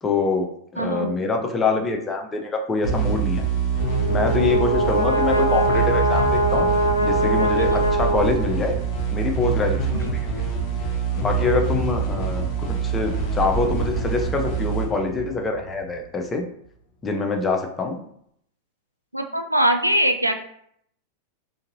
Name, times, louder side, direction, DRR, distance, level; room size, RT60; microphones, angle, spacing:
voice 1, 0.0-0.5 0.7-3.5 4.1-6.7 7.0-8.8 9.1-10.4 11.2-16.4 17.0-18.0, left 3 dB, 15° left, 3 dB, 0.5 m, -25 dB
voice 2, 0.8-1.1 4.5-4.6 7.7-7.8 9.9-10.1 19.1-20.3, right 1 dB, 85° right, 5 dB, 0.3 m, -22 dB
sound 1, 2.8-16.1, right 5 dB, 40° left, 0.9 m, -25 dB
Brass instrument, 3.7-8.8, right 1 dB, 85° left, 0.3 m, -22 dB
3.8 x 2.6 x 2.7 m, 0.69 s
figure-of-eight pair, 90°, 0 cm